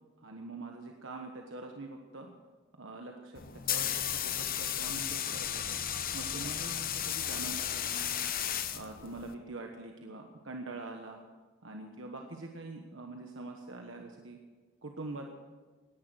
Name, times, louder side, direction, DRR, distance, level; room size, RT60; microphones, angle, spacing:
voice 1, 0.2-2.3 2.8-5.8 6.1-8.1 8.7-11.2 11.6-14.4 14.8-15.3, right 2 dB, 70° right, 2 dB, 1.3 m, -44 dB
sound 1, 3.3-9.3, left 9 dB, 45° left, 0.9 m, -34 dB
18.0 x 11.0 x 6.4 m, 1.4 s
head